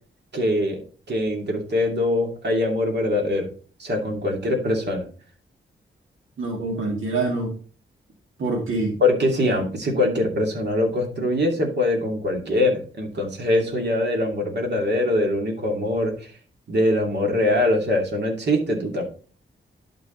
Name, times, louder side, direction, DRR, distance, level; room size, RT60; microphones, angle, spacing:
voice 1, 0.3-3.5 3.8-5.0 9.0-16.3 16.7-19.0, left 1 dB, 55° right, 1 dB, 2.7 m, -23 dB
voice 2, 6.4-7.6 8.4-9.0, right 3 dB, 70° right, -1 dB, 2.2 m, -25 dB
11.0 x 5.3 x 3.9 m, 0.40 s
cardioid pair, 85°, 21 cm